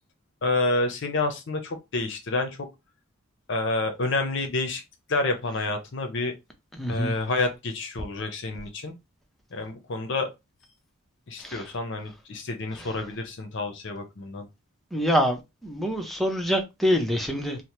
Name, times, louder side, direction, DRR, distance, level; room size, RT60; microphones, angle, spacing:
voice 1, 0.4-2.6 3.5-4.8 5.1-6.3 6.9-9.0 9.5-10.3 11.3-14.5, left 2 dB, 60° left, 0.6 m, -28 dB
voice 2, 6.7-7.1 11.4-11.7 12.8-12.9 14.9-17.6, equal, ahead, 0.5 m, -26 dB
2.8 x 2.0 x 3.0 m
head